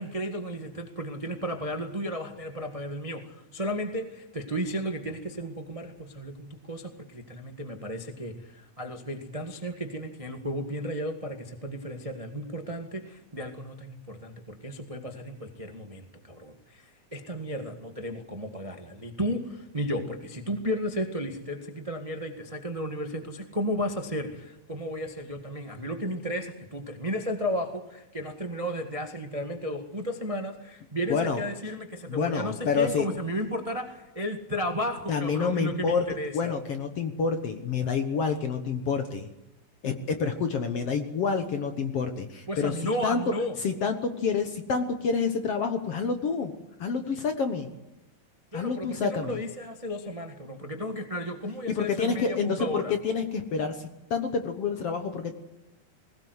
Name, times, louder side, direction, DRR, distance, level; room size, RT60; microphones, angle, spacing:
voice 1, 0.0-36.5 42.5-43.6 48.5-52.9, equal, 60° right, 4 dB, 0.3 m, -34 dB
voice 2, 31.1-31.4 32.1-33.1 35.1-36.1 36.3-39.3 39.8-43.2 43.6-46.5 46.8-47.7 48.5-49.4 51.7-55.4, left 5 dB, 60° left, 7 dB, 1.7 m, -28 dB
21.0 x 18.0 x 8.1 m, 0.95 s
omnidirectional pair, 4.2 m